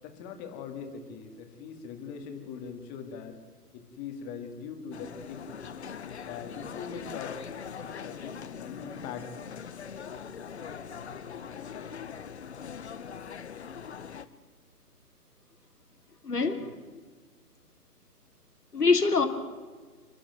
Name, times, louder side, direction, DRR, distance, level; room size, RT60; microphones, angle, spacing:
voice 1, 0.0-3.4 3.7-5.4 6.3-7.3 7.9-9.3 11.6-12.4, left 6 dB, 15° left, 2.2 m, -42 dB
sound 1, 4.9-14.3, left 7 dB, 45° left, 1.2 m, -41 dB
voice 2, 16.2-16.7 18.7-19.3, left 4 dB, 70° left, 3.0 m, -24 dB
29.5 x 11.5 x 9.4 m
figure-of-eight pair, 135°, 48 cm